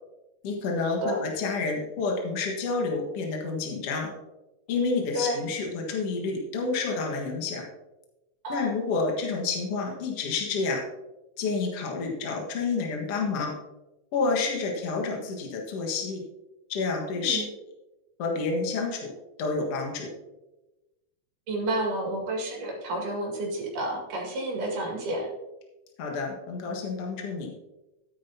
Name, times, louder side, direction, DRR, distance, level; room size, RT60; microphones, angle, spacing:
voice 1, 0.4-4.1 4.7-7.6 8.5-10.8 11.4-13.5 14.1-16.2 16.7-17.4 18.2-19.1 19.4-20.1 26.0-27.5, left 4 dB, 55° left, 1 dB, 2.4 m, -29 dB
voice 2, 5.2-5.5 8.4-8.8 17.1-17.5 21.5-25.3, right 1 dB, 90° right, -1 dB, 3.7 m, -30 dB
12.5 x 10.0 x 2.8 m, 1.0 s
omnidirectional pair, 3.6 m